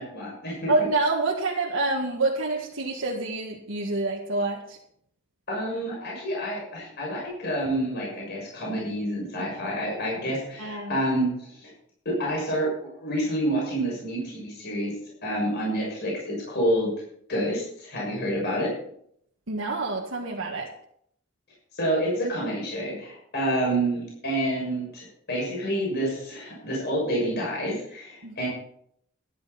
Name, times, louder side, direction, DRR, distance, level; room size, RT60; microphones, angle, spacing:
voice 1, 0.0-0.7 5.5-11.7 12.0-14.9 15.2-16.9 17.3-18.7 21.7-28.5, right 1 dB, 55° left, -3 dB, 6.6 m, -28 dB
voice 2, 0.7-4.8 10.6-10.9 19.5-20.7 28.2-28.4, right 2 dB, 70° right, -2 dB, 1.7 m, -27 dB
13.5 x 12.0 x 4.3 m, 0.69 s
head